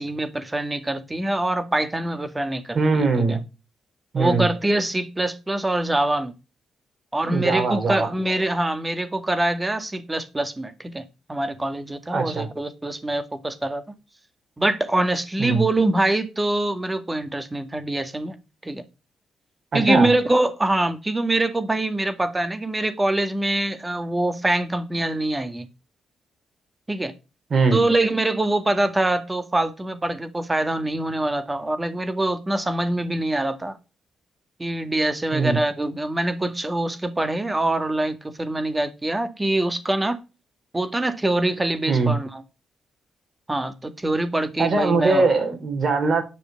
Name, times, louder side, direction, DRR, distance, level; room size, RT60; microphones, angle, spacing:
voice 1, 0.0-3.4 4.2-6.3 7.1-11.0 11.3-13.8 14.6-18.4 18.6-18.8 19.7-25.7 26.9-27.1 27.7-33.8 34.6-40.2 40.7-42.4 43.5-45.3, right 2 dB, 20° right, 2.0 m, -24 dB
voice 2, 2.7-3.4 4.1-4.5 7.3-8.1 12.1-12.5 15.4-15.6 19.7-20.1 27.5-27.8 35.3-35.6 41.9-42.1 44.6-46.2, right 4 dB, 55° right, 4.2 m, -21 dB
10.0 x 6.5 x 6.6 m
supercardioid pair, 50°, 0 cm